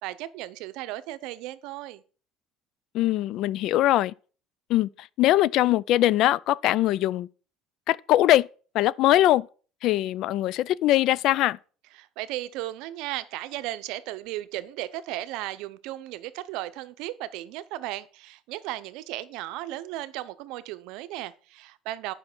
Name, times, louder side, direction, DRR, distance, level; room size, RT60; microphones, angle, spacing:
voice 1, 0.0-2.0 12.0-22.1, right 15 dB, 75° right, 0.7 m, -35 dB
voice 2, 2.9-4.1 4.7-7.3 7.9-8.5 8.7-9.5 9.8-11.6, left 14 dB, 60° left, 0.4 m, -22 dB
9.8 x 5.7 x 6.0 m
cardioid pair, 115°, 0 cm